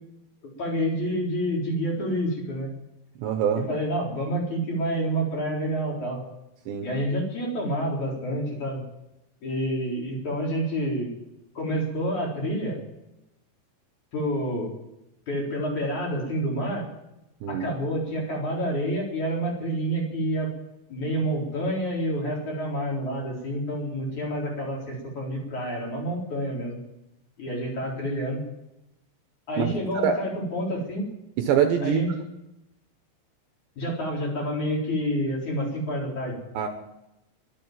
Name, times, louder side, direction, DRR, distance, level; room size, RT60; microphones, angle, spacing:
voice 1, 0.6-2.7 3.6-6.2 6.8-8.8 9.4-11.1 11.5-12.8 14.1-14.7 15.3-16.8 17.5-20.5 20.9-26.8 27.4-28.4 29.5-31.0 31.8-32.1 33.8-36.4, equal, 40° left, -3 dB, 5.0 m, -28 dB
voice 2, 3.2-3.6 6.7-6.9 17.4-17.7 29.6-29.8 30.0-30.2 31.4-32.0 36.5-36.7, right 8 dB, 70° right, 6 dB, 2.9 m, -24 dB
23.0 x 8.0 x 7.5 m, 0.88 s
omnidirectional pair, 5.9 m